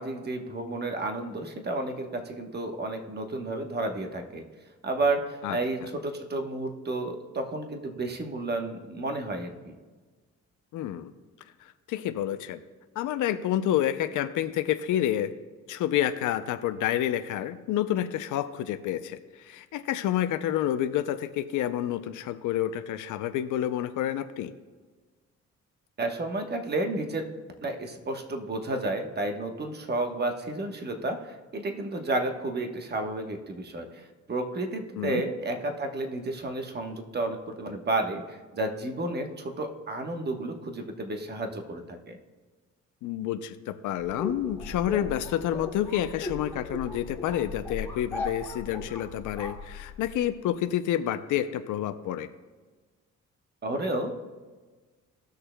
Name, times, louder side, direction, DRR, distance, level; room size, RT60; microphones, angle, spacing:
voice 1, 0.0-4.4 4.8-9.8 26.0-27.2 27.6-42.2 53.6-54.1, right 2 dB, 35° right, 4 dB, 1.1 m, -31 dB
voice 2, 10.7-11.1 11.6-12.6 13.0-15.3 15.7-24.5 35.0-35.2 43.0-52.3, left 11 dB, 80° left, 10 dB, 0.5 m, -29 dB
sound 1, 44.0-50.3, left 3 dB, 10° left, 1.8 m, -37 dB
18.0 x 6.6 x 2.2 m, 1.4 s
cardioid pair, 90°, 30 cm